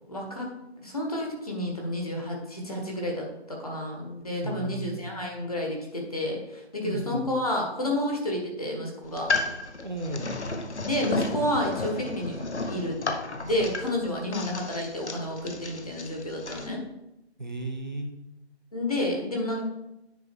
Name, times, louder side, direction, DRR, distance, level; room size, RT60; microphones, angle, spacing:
voice 1, 0.1-0.5 0.8-9.3 10.8-12.4 12.7-13.0 13.4-16.8 18.7-19.6, left 1 dB, 35° left, -1 dB, 1.5 m, -30 dB
voice 2, 4.4-5.1 6.8-7.3 9.8-10.3 17.4-18.1, right 2 dB, 45° right, 3 dB, 0.9 m, -34 dB
sound 1, 9.0-16.7, left 3 dB, 90° left, 1.1 m, -33 dB
9.4 x 3.7 x 4.6 m, 0.89 s
figure-of-eight pair, 180°, 33 cm